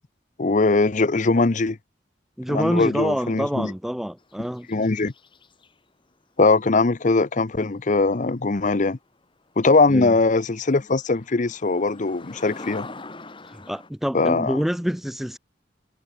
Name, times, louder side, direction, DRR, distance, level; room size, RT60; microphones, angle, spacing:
voice 1, 0.4-1.8 2.5-3.7 4.7-5.1 6.4-9.0 9.6-12.9 14.1-14.6, left 3 dB, 45° left, 0.7 m, -21 dB
voice 2, 2.4-4.7 9.9-10.1 13.5-15.4, equal, ahead, 0.3 m, -27 dB
sound 1, 4.2-5.7 9.2-9.3 9.8-9.9 10.1-13.9, left 3 dB, 30° left, 2.3 m, -42 dB
head